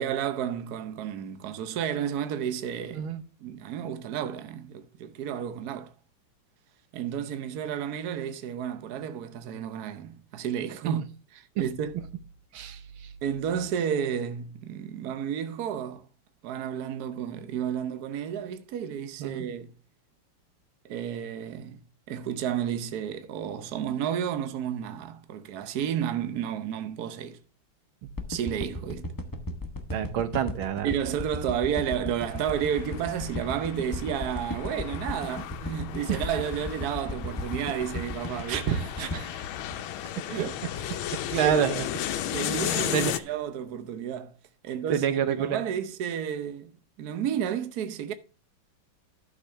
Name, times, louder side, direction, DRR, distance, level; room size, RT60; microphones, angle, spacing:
voice 1, 0.0-3.1 3.4-5.9 6.9-11.0 11.3-12.0 13.2-16.0 16.4-19.7 20.8-21.8 22.1-27.4 28.3-29.1 30.8-38.8 40.3-40.6 41.4-41.6 42.3-44.3 44.6-45.0 45.4-46.7 47.0-48.1, right 9 dB, 60° right, 1.2 m, -31 dB
voice 2, 2.9-3.2 10.8-10.9 12.5-13.1 19.2-19.5 28.0-28.1 29.9-30.9 36.1-36.2 38.5-39.4 41.3-41.9 42.7-43.2 44.9-45.6, right 8 dB, 90° right, 1.8 m, -28 dB
sound 1, 28.2-40.5 40.9-41.0, left 2 dB, 30° left, 0.4 m, -35 dB
sound 2, 32.3-43.2, left 11 dB, 85° left, 1.5 m, -35 dB
12.0 x 6.7 x 3.3 m
omnidirectional pair, 2.2 m